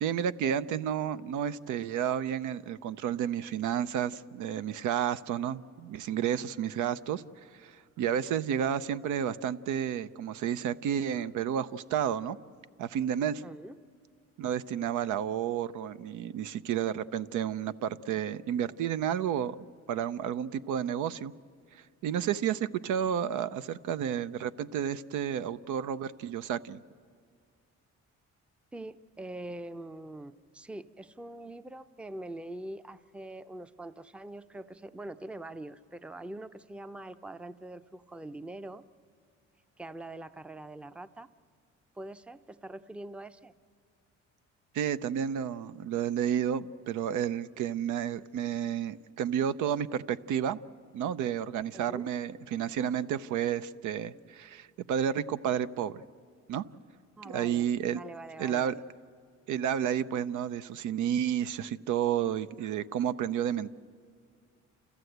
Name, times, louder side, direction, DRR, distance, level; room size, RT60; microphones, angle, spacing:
voice 1, 0.0-12.4 12.8-13.4 14.4-19.6 19.9-21.3 22.0-26.8 44.7-50.6 50.9-56.0 56.5-56.6 57.2-58.0 58.4-58.8 59.5-63.7, right 9 dB, 80° right, 13 dB, 0.6 m, -31 dB
voice 2, 13.4-13.8 28.7-38.8 39.8-41.3 42.0-43.5 51.7-52.1 57.2-58.8, right 1 dB, 5° right, 12 dB, 0.5 m, -43 dB
28.5 x 14.5 x 7.9 m, 2.1 s
cardioid pair, 90°, 30 cm